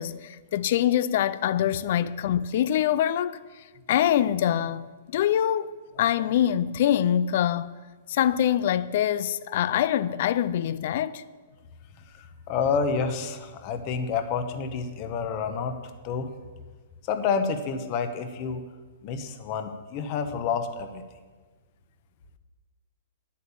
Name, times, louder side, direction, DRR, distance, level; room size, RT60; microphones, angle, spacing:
voice 1, 0.0-7.7 8.1-11.2, left 10 dB, 50° left, 0.5 m, -25 dB
voice 2, 12.1-15.8 16.0-16.3 17.0-18.6 19.0-21.0, left 5 dB, 30° left, 1.0 m, -29 dB
10.5 x 8.6 x 7.1 m
hypercardioid pair, 165°, 0 cm